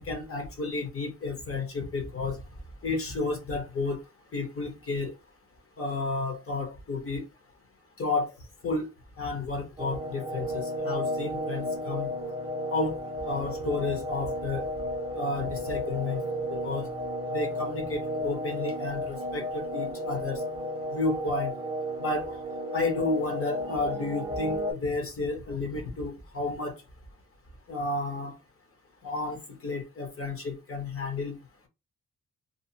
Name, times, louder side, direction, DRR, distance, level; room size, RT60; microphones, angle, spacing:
voice 1, 0.0-2.4 2.8-4.0 4.3-5.1 5.8-7.2 8.0-8.3 8.6-8.9 9.2-12.1 12.7-12.9 13.2-14.7 15.1-16.2 16.5-16.9 17.3-20.4 20.9-21.5 22.0-22.4 22.7-26.7 27.7-28.3 29.0-29.4 29.6-31.3, left 3 dB, 45° left, 0.9 m, -31 dB
sound 1, 9.8-24.7, left 1 dB, 15° right, 0.5 m, -33 dB
2.7 x 2.4 x 2.7 m
wide cardioid pair, 150°, 32 cm